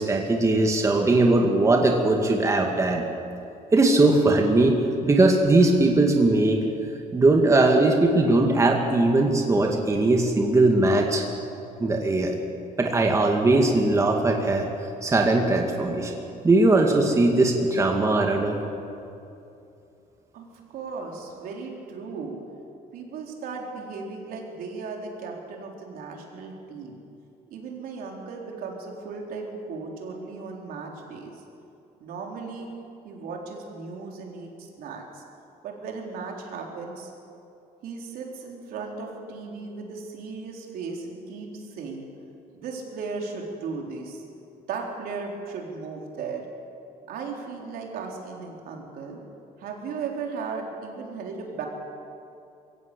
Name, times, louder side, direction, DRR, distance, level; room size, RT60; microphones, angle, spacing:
voice 1, 0.0-3.1 3.7-6.6 7.1-11.3 11.8-12.4 12.8-14.7 15.0-16.1 16.4-18.6, right 2 dB, 20° right, 2 dB, 2.1 m, -20 dB
voice 2, 20.3-22.4 22.9-27.0 27.5-31.4 32.0-32.7 33.0-35.2 35.6-37.1 37.8-42.1 42.5-44.2 44.7-46.5 47.1-49.2 49.6-51.7, right 4 dB, 75° right, 0 dB, 4.0 m, -36 dB
22.0 x 16.5 x 8.6 m, 2.7 s
cardioid pair, 125°, 15 cm